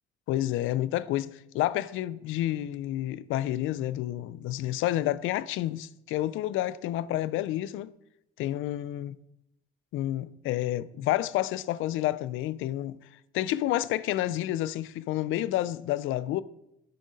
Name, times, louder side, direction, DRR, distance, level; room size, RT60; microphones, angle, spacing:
voice 1, 0.3-7.9 8.4-9.2 9.9-13.0 13.3-16.4, left 14 dB, 90° left, 0.4 m, -29 dB
8.4 x 6.3 x 5.1 m
cardioid pair, 90°, 20 cm